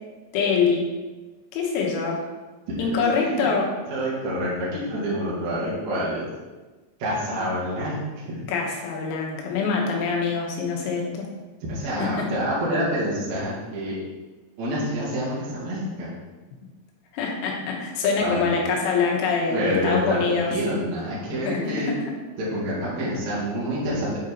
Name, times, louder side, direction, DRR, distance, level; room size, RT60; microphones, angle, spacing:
voice 1, 0.3-0.9 1.5-2.2 2.8-3.7 8.5-11.2 12.0-12.3 17.1-20.5 21.5-21.8, left 5 dB, 90° left, -1 dB, 4.0 m, -24 dB
voice 2, 2.7-3.5 3.9-6.3 7.0-8.4 11.6-14.0 14.6-16.2 18.2-18.6 19.5-21.9 22.4-24.1, equal, 55° right, -8 dB, 2.1 m, -27 dB
8.9 x 3.9 x 4.4 m, 1.2 s
omnidirectional pair, 6.0 m